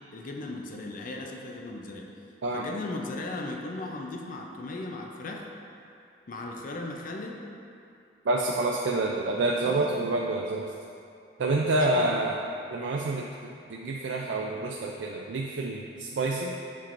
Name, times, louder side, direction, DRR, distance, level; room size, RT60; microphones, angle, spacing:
voice 1, 0.1-2.1 2.5-5.4 6.3-7.4 9.6-10.0 11.6-12.2, left 2 dB, 45° left, 1 dB, 0.5 m, -37 dB
voice 2, 8.2-10.7 11.4-12.4 12.7-13.3 13.7-16.6, right 2 dB, 70° right, -1 dB, 0.4 m, -28 dB
7.2 x 5.8 x 2.5 m, 2.6 s
head